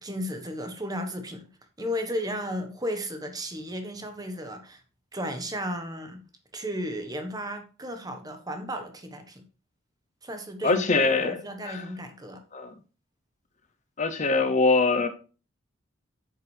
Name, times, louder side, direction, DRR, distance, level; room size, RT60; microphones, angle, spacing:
voice 1, 0.0-1.5 1.8-4.8 5.1-6.2 6.5-9.4 10.2-10.8 11.2-12.4, equal, 20° right, 1.3 m, -34 dB
voice 2, 10.6-11.8 12.5-12.7 14.0-15.1, left 3 dB, 40° left, 0.7 m, -23 dB
8.8 x 7.3 x 3.3 m
head